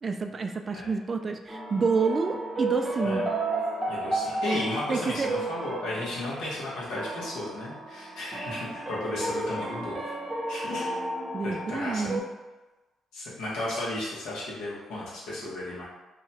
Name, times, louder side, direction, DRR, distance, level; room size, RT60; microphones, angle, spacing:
voice 1, 0.0-3.3 4.9-5.3 11.3-12.2, right 4 dB, 35° right, 6 dB, 0.3 m, -28 dB
sound 1, 1.5-12.2, right 2 dB, 5° right, 0.7 m, -33 dB
voice 2, 3.9-10.0 10.5-11.1 11.4-12.1 13.1-15.8, left 1 dB, 90° left, -6 dB, 1.1 m, -34 dB
2.9 x 2.3 x 4.1 m, 1.1 s
cardioid pair, 90°, 0 cm